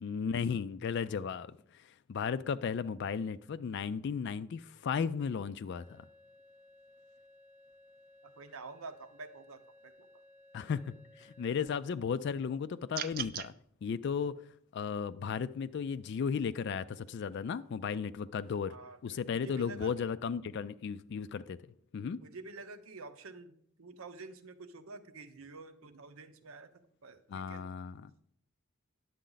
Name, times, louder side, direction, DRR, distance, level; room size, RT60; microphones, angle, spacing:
voice 1, 0.0-1.5 2.1-6.0 10.5-13.5 13.8-14.3 14.7-18.7 19.0-21.6 21.9-22.2 27.3-27.9, left 6 dB, 55° left, 0.3 m, -35 dB
sound 1, 5.7-11.8, left 1 dB, 25° left, 0.7 m, -60 dB
voice 2, 8.2-10.2 18.7-20.0 22.2-27.6, right 3 dB, 80° right, 0.8 m, -49 dB
sound 2, 12.9-13.5, right 10 dB, 45° right, 0.4 m, -37 dB
10.0 x 7.4 x 3.9 m
head